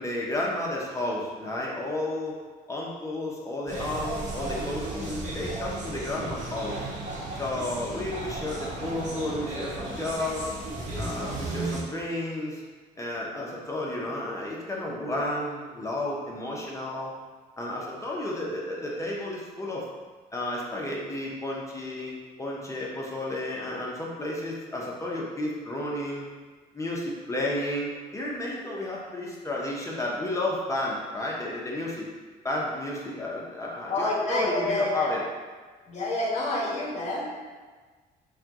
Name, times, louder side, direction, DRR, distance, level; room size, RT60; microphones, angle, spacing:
voice 1, 0.0-2.3 2.7-6.9 7.4-10.5 11.0-12.6 13.0-17.1 17.6-19.8 20.3-26.3 26.7-32.1 32.4-35.2, left 1 dB, 20° left, -3 dB, 0.7 m, -32 dB
sound 1, 3.7-11.8, right 2 dB, 45° right, 1.1 m, -34 dB
voice 2, 33.9-35.2 35.9-37.3, left 2 dB, 40° left, -3 dB, 1.2 m, -28 dB
4.3 x 2.3 x 3.6 m, 1.4 s
cardioid pair, 110°, 17 cm